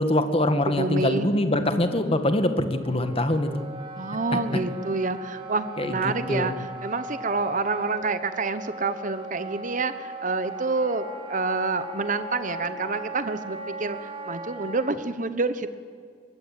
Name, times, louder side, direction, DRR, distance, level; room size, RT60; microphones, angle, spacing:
voice 1, 0.0-3.6 4.3-4.4 5.8-6.6, left 1 dB, 30° left, 8 dB, 2.0 m, -24 dB
voice 2, 0.7-1.3 3.9-15.8, right 3 dB, 45° right, 12 dB, 1.1 m, -28 dB
Wind instrument woodwind instrument, 2.8-14.9, right 2 dB, 30° right, 3.3 m, -38 dB
23.5 x 21.5 x 9.2 m, 2.1 s
head